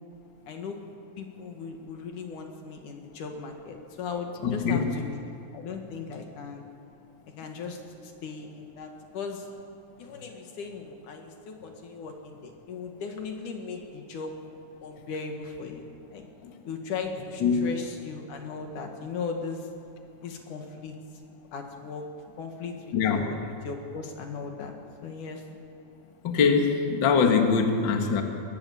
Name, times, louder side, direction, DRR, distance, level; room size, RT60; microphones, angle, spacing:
voice 1, 0.5-0.8 1.2-6.6 7.4-9.5 10.0-14.3 14.8-16.2 16.6-19.7 20.2-20.9 21.5-22.0 22.4-25.4, left 5 dB, 70° left, 3 dB, 3.2 m, -38 dB
voice 2, 4.4-4.8 16.4-16.5 17.4-17.6 22.9-23.2 26.2-28.2, left 5 dB, 45° left, 4 dB, 1.8 m, -23 dB
22.0 x 19.0 x 7.1 m, 2.5 s
omnidirectional pair, 3.9 m